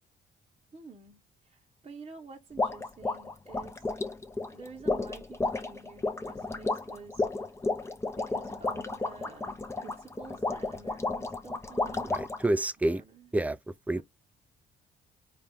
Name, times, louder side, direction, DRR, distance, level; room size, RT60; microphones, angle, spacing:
voice 1, 0.7-3.9 4.5-7.2 8.1-12.1 12.8-13.3 13.9-14.0, right 4 dB, 30° right, 0.9 m, -49 dB
sound 1, 2.6-12.5, left 3 dB, 15° left, 0.8 m, -32 dB
voice 2, 12.1-13.0 13.3-13.6 13.9-14.0, right 1 dB, 5° right, 0.4 m, -28 dB
4.1 x 2.4 x 3.4 m
cardioid pair, 90°, 20 cm